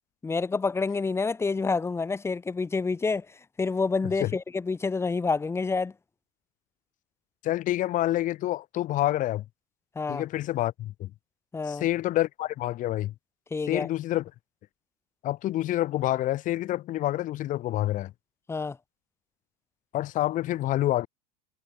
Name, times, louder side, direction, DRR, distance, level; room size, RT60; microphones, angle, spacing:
voice 1, 0.2-3.3 3.6-5.9 9.9-10.2 11.5-11.8 13.5-13.9 18.5-18.8, left 4 dB, 10° left, 2.7 m, -28 dB
voice 2, 7.4-9.4 10.1-11.1 11.7-13.1 13.7-14.3 15.2-18.1 19.9-21.1, left 14 dB, 40° left, 2.3 m, -27 dB
supercardioid pair, 150°, 21 cm